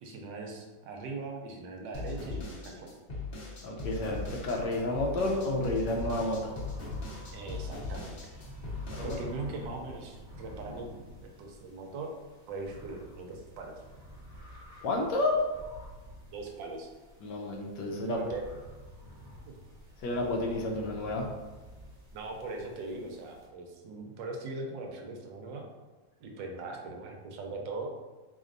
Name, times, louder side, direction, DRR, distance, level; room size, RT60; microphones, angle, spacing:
voice 1, 0.0-2.9 7.3-8.3 9.0-10.9 11.2-12.1 12.5-13.7 16.3-16.9 18.1-18.4 19.5-19.6 22.1-25.7 26.2-27.9, right 3 dB, 80° right, 2 dB, 1.3 m, -40 dB
sound 1, 1.9-9.2, left 3 dB, 40° left, 0.9 m, -39 dB
voice 2, 3.6-6.5 8.9-9.2 14.8-15.4 17.2-18.2 20.0-21.3, left 2 dB, 75° left, 0 dB, 1.1 m, -30 dB
sound 2, 3.8-23.5, equal, 40° right, 0.8 m, -49 dB
4.1 x 3.4 x 2.5 m, 1.2 s
omnidirectional pair, 2.1 m